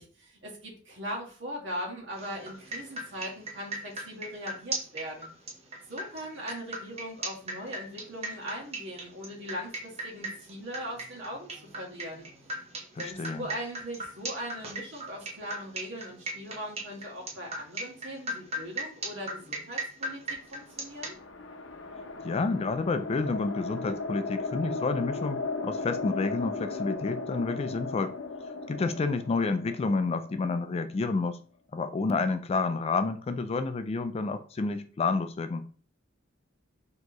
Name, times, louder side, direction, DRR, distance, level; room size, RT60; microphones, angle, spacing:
voice 1, 0.0-5.3 5.9-12.3 13.0-21.2, equal, 65° right, 1.4 m, -40 dB
sound 1, 2.2-21.2, right 2 dB, 35° right, 0.8 m, -37 dB
voice 2, 13.0-13.5 22.2-28.1 28.7-31.4 31.7-35.7, left 3 dB, 30° left, 0.3 m, -29 dB
sound 2, 20.5-30.9, left 3 dB, 75° left, 0.6 m, -36 dB
4.3 x 2.9 x 3.0 m
head